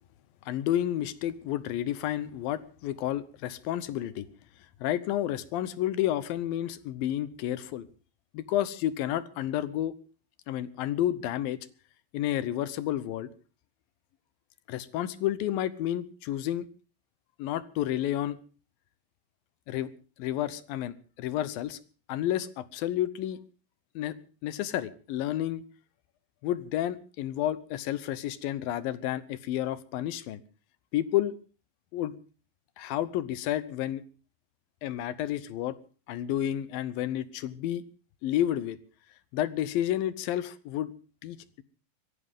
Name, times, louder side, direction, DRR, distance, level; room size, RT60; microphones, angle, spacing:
voice 1, 0.5-4.3 4.8-7.9 8.3-9.9 10.5-11.6 12.1-13.3 14.7-16.7 17.4-18.4 19.7-19.9 20.2-21.8 22.1-23.4 24.0-24.2 24.4-25.6 26.4-30.4 30.9-31.3 31.9-32.2 32.8-34.0 34.8-35.8 36.1-37.8 38.2-38.8 39.3-40.9 41.2-41.6, left 12 dB, 75° left, 16 dB, 2.6 m, -30 dB
22.5 x 16.5 x 3.6 m, 0.37 s
omnidirectional pair, 4.3 m